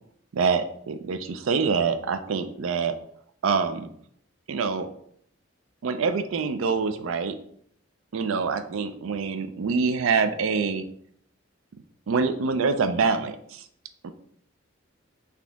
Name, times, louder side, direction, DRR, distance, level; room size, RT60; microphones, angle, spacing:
voice 1, 0.3-2.9 3.4-3.9 4.5-4.9 5.8-7.3 8.1-10.8 12.1-13.6 14.0-14.1, right 5 dB, 80° right, 10 dB, 0.4 m, -25 dB
4.0 x 2.8 x 3.5 m, 0.66 s
head